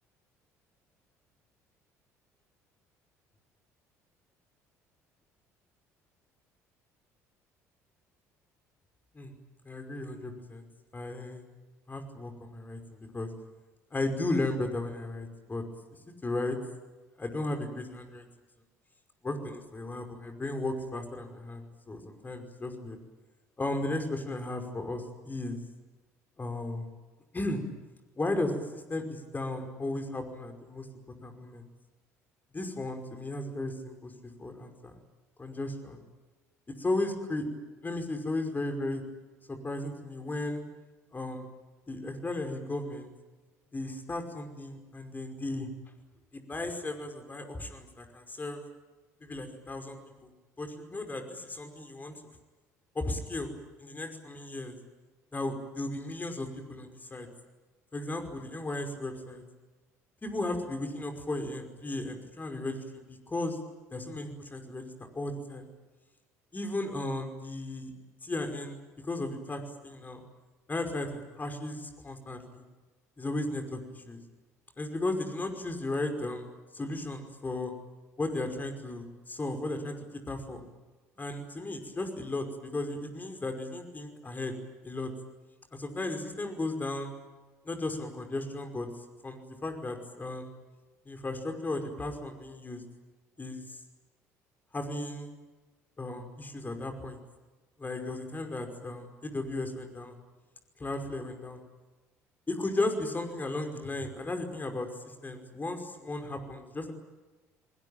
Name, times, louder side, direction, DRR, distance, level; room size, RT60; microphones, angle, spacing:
voice 1, 9.6-10.6 10.9-11.4 11.9-13.3 13.9-15.6 16.2-16.6 17.2-18.3 19.2-23.0 23.6-25.6 26.4-26.9 27.3-27.6 28.2-30.9 31.2-31.7 32.5-34.9 35.4-36.0 36.8-37.5 37.8-39.0 39.6-40.6 41.1-41.5 41.9-43.1 43.7-45.7 46.3-48.6 49.2-50.0 50.6-52.1 53.0-53.5 53.8-54.8 55.3-57.3 57.9-59.4 60.2-63.6 63.9-65.7 66.5-67.9 68.2-68.8 69.0-70.2 70.7-72.6 73.2-74.2 74.8-76.5 76.7-77.7 78.2-79.9 80.3-80.6 81.2-84.5 84.8-85.1 85.7-87.1 87.7-88.9 89.2-90.5 91.1-92.8 93.4-93.8 94.7-95.4 96.0-97.2 97.8-100.2 100.8-101.6 102.5-106.9, left 2 dB, 20° left, 5 dB, 5.4 m, -35 dB
29.5 x 21.0 x 8.9 m, 1.2 s
figure-of-eight pair, 55°, 8 cm